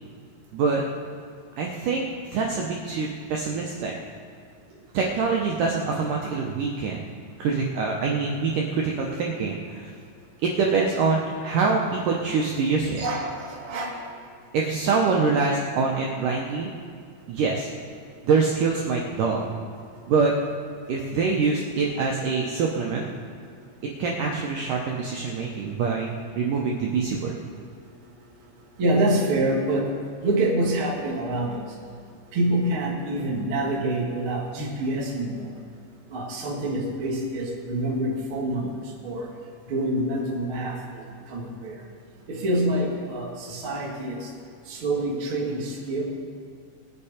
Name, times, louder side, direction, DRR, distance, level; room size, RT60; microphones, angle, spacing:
voice 1, 1.6-4.0 4.9-7.1 7.4-9.9 10.4-13.1 14.5-16.7 17.3-17.7 18.2-19.5 20.1-20.3 20.9-23.1 24.0-27.3, right 4 dB, 85° right, -1 dB, 1.8 m, -25 dB
voice 2, 13.0-14.0 28.8-29.9 30.2-31.6 32.3-35.5 36.1-39.3 39.6-41.8 42.3-44.3 44.7-46.0, right 1 dB, 45° right, -3 dB, 1.8 m, -26 dB
21.0 x 7.1 x 5.0 m, 2.2 s
omnidirectional pair, 5.1 m